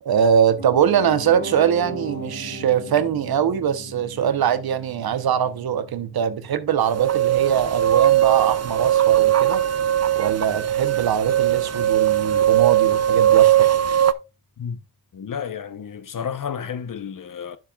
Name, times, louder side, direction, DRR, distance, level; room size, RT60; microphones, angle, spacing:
voice 1, 0.0-9.6 10.1-13.7, right 8 dB, 85° right, 0.9 m, -22 dB
Piano, 0.6-10.6 10.9-11.0, right 1 dB, 30° left, 3.5 m, -39 dB
sound 1, 6.8-14.1, right 11 dB, 45° right, 0.6 m, -19 dB
voice 2, 15.1-17.6, left 7 dB, 60° left, 0.9 m, -31 dB
9.7 x 7.4 x 2.3 m
cardioid pair, 55°, 36 cm